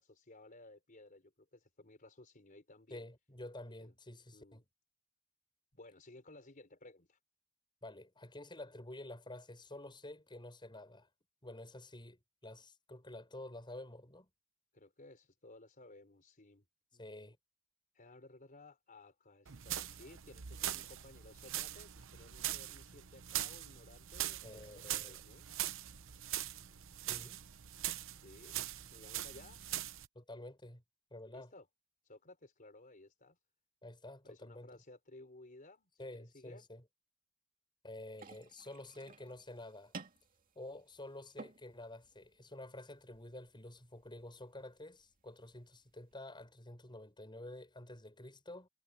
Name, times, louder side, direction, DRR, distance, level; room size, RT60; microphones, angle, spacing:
voice 1, 0.0-3.0 3.8-3.9 4.3-4.6 5.7-7.2 14.7-16.6 16.9-17.1 17.9-25.5 28.1-28.6 28.9-29.6 31.3-31.7 32.0-33.4 34.2-36.7, left 2 dB, 40° left, 4.4 m, -57 dB
voice 2, 2.9-4.6 7.8-11.1 11.4-14.3 17.0-17.4 24.4-25.2 27.1-27.4 30.1-30.8 31.1-31.5 33.8-34.7 36.0-36.8 37.8-39.9 40.5-48.7, left 1 dB, 20° left, 6.7 m, -50 dB
sound 1, 19.5-30.1, right 12 dB, 65° right, 0.9 m, -42 dB
sound 2, 38.1-46.1, right 3 dB, 40° right, 2.3 m, -56 dB
head